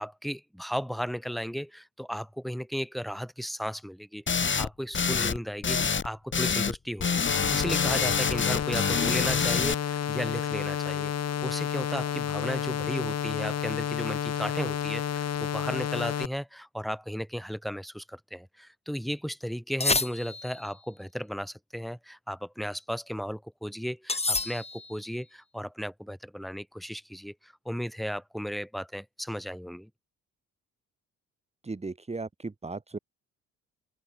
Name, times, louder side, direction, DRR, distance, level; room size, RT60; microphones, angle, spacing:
voice 1, 0.0-7.2 7.5-11.1 11.4-29.9, equal, ahead, 7.8 m, -35 dB
sound 1, 4.3-4.7 4.9-5.4 5.6-6.1 6.3-6.8 7.0-9.7, left 6 dB, 40° left, 6.2 m, -26 dB
sound 2, 7.3-16.3, left 8 dB, 55° left, 5.2 m, -31 dB
sound 3, 19.8-20.7 24.1-25.0, left 3 dB, 20° left, 4.2 m, -29 dB
voice 2, 31.6-33.0, right 3 dB, 20° right, 3.3 m, -36 dB
open air
cardioid pair, 90°, 30 cm